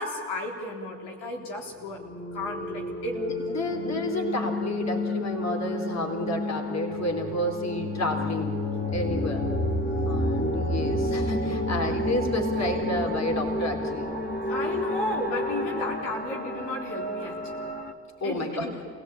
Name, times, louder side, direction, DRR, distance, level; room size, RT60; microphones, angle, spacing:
voice 1, 0.0-2.0 2.3-3.2 14.5-17.6 18.2-18.7, left 2 dB, 70° left, 0 dB, 4.0 m, -33 dB
sound 1, 1.9-17.9, left 1 dB, 25° left, 3.1 m, -30 dB
voice 2, 3.1-8.6 8.9-9.5 10.1-14.1 18.2-18.7, left 1 dB, 40° left, 3 dB, 3.9 m, -30 dB
27.5 x 17.5 x 8.8 m, 2.1 s
hypercardioid pair, 60°, 42 cm